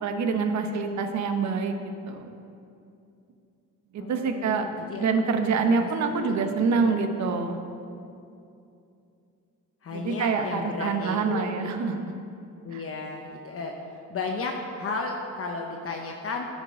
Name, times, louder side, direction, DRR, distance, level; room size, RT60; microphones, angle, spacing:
voice 1, 0.0-1.7 2.1-2.3 3.9-4.6 5.0-7.6 9.9-12.1 12.7-12.8, right 5 dB, 65° right, 6 dB, 0.9 m, -26 dB
voice 2, 4.0-5.1 5.5-5.9 6.2-6.9 9.8-11.7 12.6-16.5, left 3 dB, 50° left, 1 dB, 0.9 m, -34 dB
10.5 x 5.2 x 6.2 m, 2.6 s
cardioid pair, 90°, 30 cm